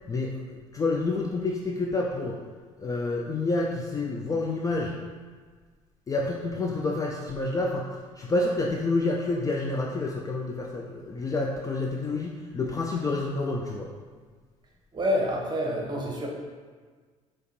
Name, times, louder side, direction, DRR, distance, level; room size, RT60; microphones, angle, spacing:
voice 1, 0.1-2.4 2.8-5.0 6.1-7.9 8.2-13.9, left 2 dB, 20° left, -1 dB, 0.4 m, -28 dB
voice 2, 14.9-16.3, equal, 25° right, -1 dB, 0.9 m, -27 dB
4.8 x 2.9 x 3.0 m, 1.5 s
figure-of-eight pair, 55°, 17 cm